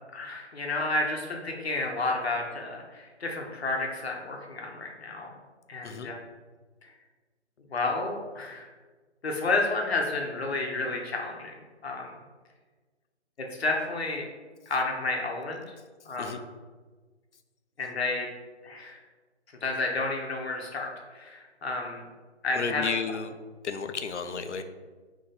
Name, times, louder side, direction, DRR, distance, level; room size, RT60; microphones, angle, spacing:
voice 1, 0.1-5.3 5.7-6.1 6.8-6.9 7.7-8.7 9.2-12.1 13.4-14.3 14.7-15.7 16.0-16.4 17.8-18.3 18.6-19.0 19.6-22.0 22.4-22.9, left 2 dB, 65° left, 1 dB, 1.0 m, -31 dB
voice 2, 22.6-23.3 23.6-24.6, left 5 dB, 80° left, 8 dB, 0.6 m, -32 dB
3.8 x 3.1 x 4.2 m, 1.3 s
hypercardioid pair, 165°, 35 cm